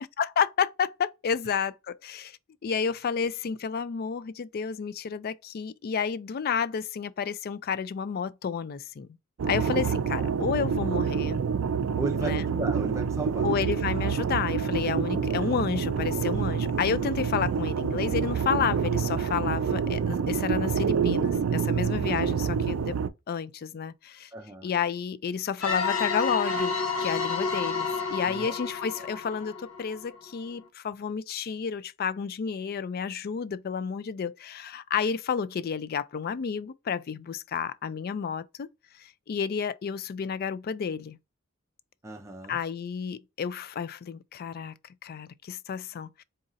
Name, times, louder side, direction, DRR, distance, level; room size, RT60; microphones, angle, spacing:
voice 1, 0.2-9.1 9.5-11.4 12.2-12.4 13.4-23.0 23.3-24.3 24.6-38.7 39.0-41.2 42.5-44.7 45.0-46.2, left 6 dB, 45° left, 0.3 m, -31 dB
sound 1, 9.4-23.1, right 6 dB, 70° right, 0.4 m, -27 dB
voice 2, 12.0-13.5 24.3-24.7 28.3-28.5 29.0-29.1 42.0-42.6, right 2 dB, 15° right, 0.5 m, -35 dB
sound 2, 25.6-30.2, left 4 dB, 85° left, 1.0 m, -30 dB
4.0 x 2.5 x 3.9 m
head